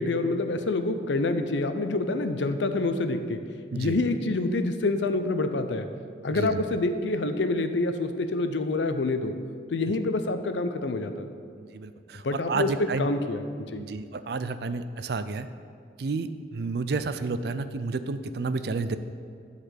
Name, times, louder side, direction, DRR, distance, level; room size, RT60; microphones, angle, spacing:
voice 1, 0.0-3.4 3.7-5.9 6.2-9.4 9.7-11.3 12.2-13.8, left 2 dB, 75° left, 8 dB, 0.6 m, -27 dB
voice 2, 6.3-6.6 11.7-13.1 13.8-15.5 16.0-19.0, right 4 dB, 60° right, 11 dB, 0.4 m, -31 dB
10.5 x 4.2 x 6.4 m, 2.3 s
head